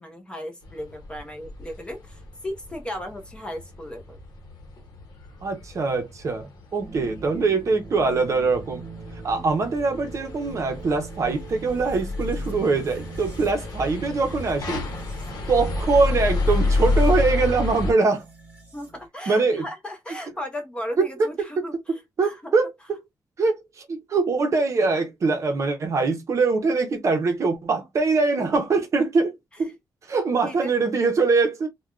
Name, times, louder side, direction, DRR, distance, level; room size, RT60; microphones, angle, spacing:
voice 1, 0.0-4.2 18.7-22.5 29.5-29.8 30.5-30.7, left 1 dB, 15° left, 0.7 m, -36 dB
sound 1, 0.6-17.9, left 2 dB, 65° left, 0.9 m, -30 dB
voice 2, 5.4-8.8 9.2-14.9 15.5-18.2 19.3-19.6 21.0-21.5 21.9-23.0 23.4-29.3 29.6-29.7 30.1-31.7, right 3 dB, 45° right, 0.7 m, -23 dB
sound 2, 6.8-19.1, right 3 dB, 20° right, 1.4 m, -41 dB
3.3 x 2.2 x 2.3 m
wide cardioid pair, 170°, 7 cm